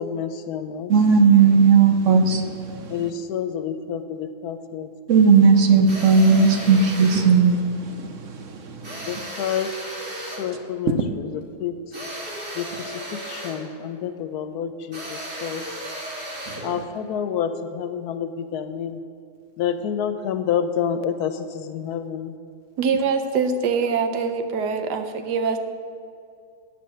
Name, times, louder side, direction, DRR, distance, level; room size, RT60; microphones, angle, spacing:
voice 1, 0.0-0.9 2.9-4.9 9.1-9.7 10.3-11.8 12.6-15.6 16.6-19.0 19.6-22.3, left 8 dB, 75° left, 1.1 m, -28 dB
voice 2, 0.9-2.9 5.1-8.4 8.8-9.1 16.5-16.6, right 5 dB, 60° right, 0.9 m, -17 dB
sound 1, 5.9-7.3 8.8-10.5 11.9-13.7 14.9-16.7, right 1 dB, 40° right, 2.7 m, -35 dB
voice 3, 22.8-25.6, right 5 dB, 80° right, 1.3 m, -23 dB
9.3 x 7.0 x 7.6 m
omnidirectional pair, 1.8 m